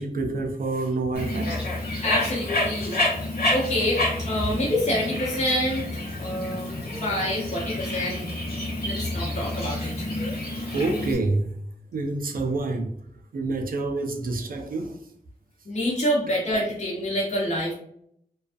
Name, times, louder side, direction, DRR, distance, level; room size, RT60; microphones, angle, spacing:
voice 1, 0.0-1.5 9.8-9.9 10.3-10.4 10.7-11.5 11.9-12.9 13.3-15.0, right 3 dB, 65° right, 0.4 m, -27 dB
Bird, 1.1-11.1, left 2 dB, 85° left, 0.9 m, -29 dB
voice 2, 2.0-2.9 3.5-6.8 7.0-8.2 8.8-10.1 15.7-17.7, left 1 dB, 45° left, 0.7 m, -27 dB
2.3 x 2.3 x 2.4 m
wide cardioid pair, 120°, 16 cm